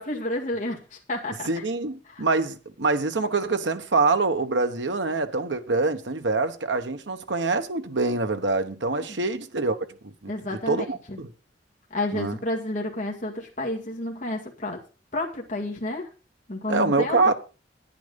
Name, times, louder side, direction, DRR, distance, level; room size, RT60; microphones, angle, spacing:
voice 1, 0.0-1.6 2.0-2.2 9.0-9.2 10.3-11.2 11.9-14.8 15.1-16.1 16.5-17.3, left 2 dB, 45° left, 2.0 m, -31 dB
voice 2, 1.5-9.8 10.0-11.3 12.1-12.3 16.7-17.3, right 3 dB, 80° right, 1.1 m, -25 dB
10.5 x 9.9 x 5.2 m
head